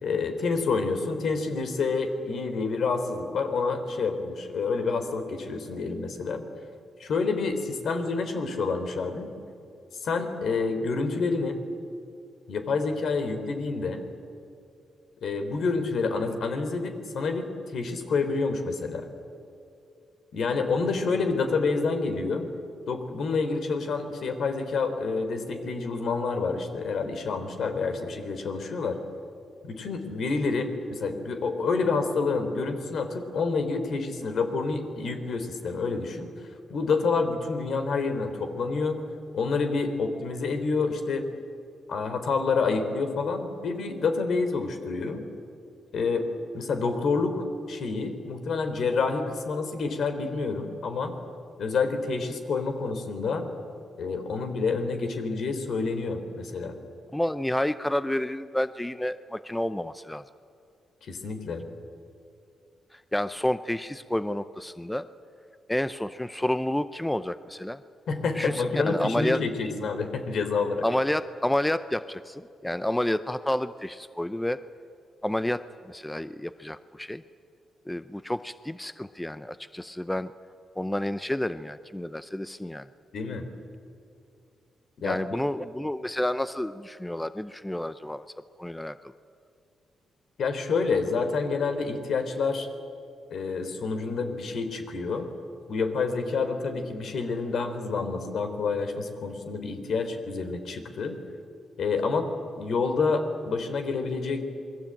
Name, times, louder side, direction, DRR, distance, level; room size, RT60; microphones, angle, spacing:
voice 1, 0.0-6.4 7.0-9.3 10.0-11.6 12.5-14.0 15.2-19.1 20.3-22.5 22.9-29.0 29.6-36.3 36.7-39.0 39.3-41.2 41.9-45.2 45.9-46.3 46.5-51.1 51.6-53.5 54.0-56.8 61.0-61.6 68.1-70.8 83.1-83.5 85.0-85.2 90.4-92.7 93.3-95.3 95.7-101.2 101.8-102.3 102.6-104.4, left 4 dB, 60° left, 7 dB, 3.4 m, -28 dB
voice 2, 57.1-60.2 62.9-65.1 65.7-67.8 68.3-69.4 70.8-74.6 75.2-77.2 77.9-80.3 80.8-82.9 85.0-88.3 88.6-89.1, left 1 dB, 5° left, 13 dB, 0.6 m, -30 dB
27.5 x 21.5 x 8.9 m, 2.5 s
cardioid pair, 125°, 0 cm